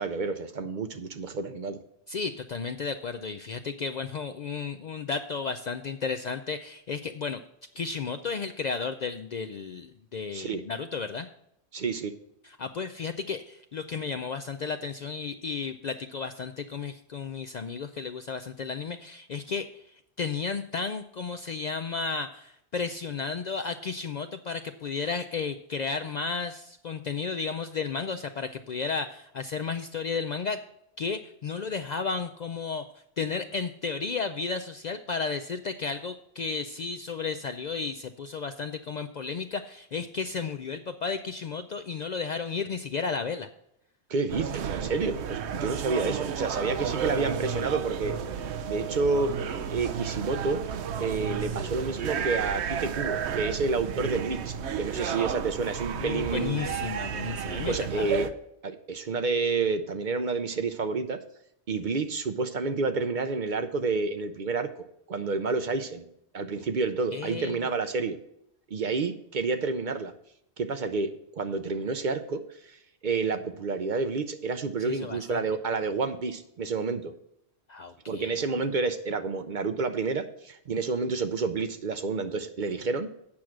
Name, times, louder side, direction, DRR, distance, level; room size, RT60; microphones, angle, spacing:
voice 1, 0.0-1.8 10.3-10.6 11.7-12.1 44.1-48.1 48.7-49.3 49.7-50.6 51.0-56.6 57.6-58.3 58.6-61.2 61.7-64.7 65.1-66.1 66.3-68.2 68.7-70.1 70.6-72.8 73.0-77.1 78.1-83.1, right 4 dB, 50° right, 9 dB, 0.7 m, -29 dB
voice 2, 2.1-7.4 7.8-11.3 12.4-19.8 20.2-30.6 31.0-32.9 33.2-43.5 54.9-55.3 56.0-58.1 67.1-67.6 74.8-75.4 77.7-78.4, left 5 dB, 55° left, 8 dB, 0.5 m, -33 dB
sound 1, 44.3-58.3, right 7 dB, 80° right, 1.0 m, -32 dB
8.7 x 6.2 x 5.9 m, 0.77 s
omnidirectional pair, 1.1 m